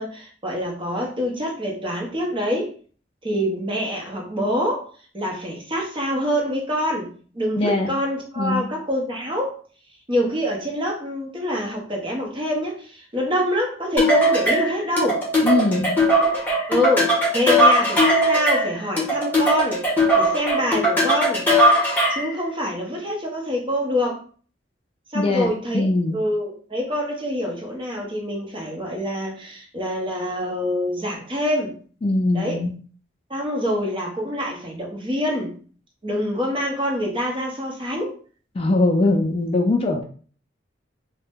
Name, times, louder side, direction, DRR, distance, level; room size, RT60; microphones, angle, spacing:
voice 1, 0.0-2.7 3.2-4.8 5.1-7.1 7.3-9.5 10.1-15.2 16.7-19.8 20.1-21.4 22.1-24.2 25.1-25.9 26.1-31.7 32.3-32.6 33.3-35.5 36.0-38.1, equal, 30° right, -2 dB, 0.9 m, -25 dB
voice 2, 7.6-7.9 8.4-8.6 15.4-15.9 25.1-25.5 25.7-26.2 32.0-32.7 38.6-40.0, left 2 dB, 30° left, 3 dB, 0.3 m, -21 dB
sound 1, 14.0-22.3, equal, 10° left, 1.0 m, -19 dB
2.7 x 2.1 x 3.4 m, 0.42 s
head